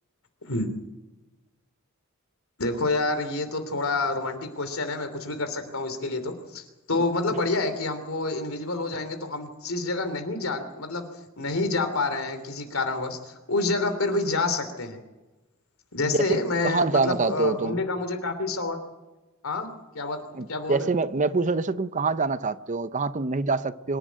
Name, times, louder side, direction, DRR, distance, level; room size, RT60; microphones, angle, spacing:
voice 1, 2.6-11.1 11.4-15.0 15.9-18.8 19.4-19.7 19.9-20.9, left 3 dB, 75° left, 3.1 m, -28 dB
voice 2, 16.0-17.8 20.4-24.0, right 3 dB, 35° right, 0.7 m, -25 dB
25.0 x 11.5 x 9.3 m
head